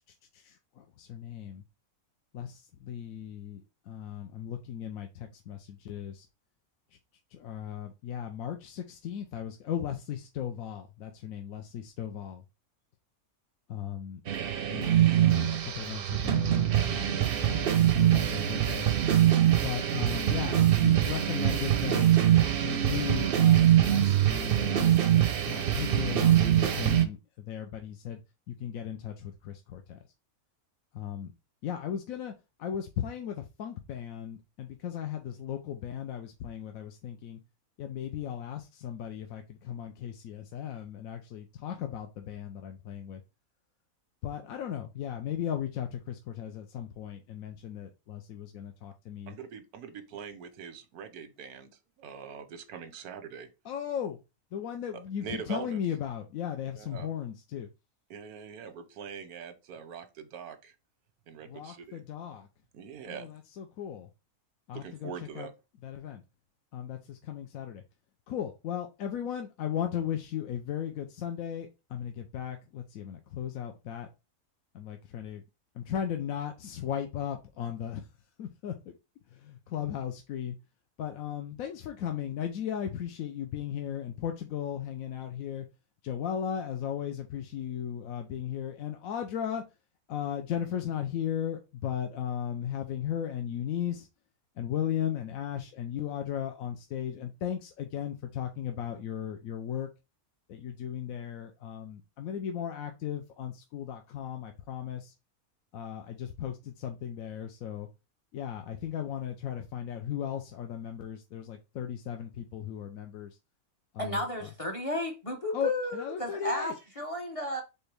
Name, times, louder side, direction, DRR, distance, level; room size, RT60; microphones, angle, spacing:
voice 1, 0.3-1.6 2.3-6.3 7.3-12.4 13.7-14.2 14.7-19.0 19.6-22.1 22.6-28.2 28.5-30.0 30.9-31.3 31.6-32.3 32.6-37.4 37.8-43.2 44.2-49.4 53.6-54.2 54.5-57.7 61.4-62.5 63.0-64.1 64.7-65.5 65.8-66.2 66.7-67.8 68.3-74.1 74.7-75.4 75.7-78.1 78.4-79.0 79.3-80.6 81.0-85.7 86.0-89.6 90.1-94.1 94.6-99.9 100.5-105.1 105.7-107.9 108.3-113.4 113.9-114.5 115.5-116.7, left 9 dB, 75° left, 1.0 m, -36 dB
sound 1, 14.3-27.1, right 11 dB, 60° right, 0.6 m, -24 dB
voice 2, 49.3-51.7 52.0-53.5 55.2-55.8 56.8-57.1 58.1-60.7 61.3-62.0 62.7-63.3 64.7-65.5, right 7 dB, 90° right, 1.3 m, -43 dB
voice 3, 114.0-117.6, left 1 dB, 35° left, 0.6 m, -33 dB
4.4 x 3.3 x 3.2 m
omnidirectional pair, 1.5 m